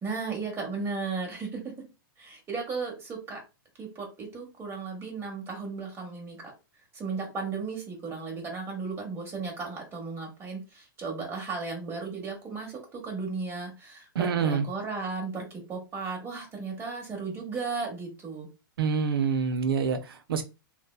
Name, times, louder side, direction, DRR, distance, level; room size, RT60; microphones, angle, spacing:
voice 1, 0.0-1.6 2.2-3.4 3.8-6.5 6.9-18.5, right 4 dB, 20° right, 1 dB, 1.1 m, -35 dB
voice 2, 14.1-14.7 18.8-20.4, right 6 dB, 80° right, 8 dB, 0.6 m, -26 dB
3.3 x 2.2 x 2.3 m, 0.29 s
hypercardioid pair, 135°, 12 cm